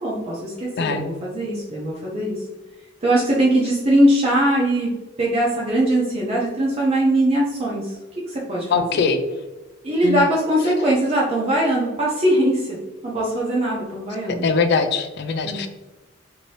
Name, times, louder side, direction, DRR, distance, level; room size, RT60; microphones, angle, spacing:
voice 1, 0.0-2.4 3.0-4.9 5.2-8.0 8.3-9.0 9.8-12.8 13.0-14.5 15.4-15.7, right 1 dB, 30° right, -5 dB, 0.5 m, -21 dB
voice 2, 0.8-1.1 8.7-9.2 10.0-10.3 14.4-15.7, left 4 dB, 50° left, 7 dB, 0.3 m, -21 dB
2.7 x 2.6 x 3.1 m, 1.1 s
head